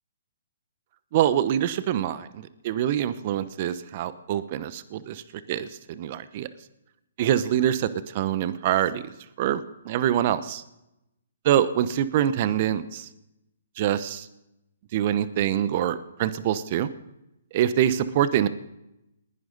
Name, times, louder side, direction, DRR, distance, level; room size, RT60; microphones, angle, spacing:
voice 1, 1.1-5.2 5.5-6.5 7.2-10.6 11.4-13.1 13.8-14.3 14.9-16.9 17.5-18.5, right 10 dB, 40° right, 14 dB, 0.9 m, -25 dB
29.5 x 10.5 x 4.0 m, 0.88 s
hypercardioid pair, 140°, 0 cm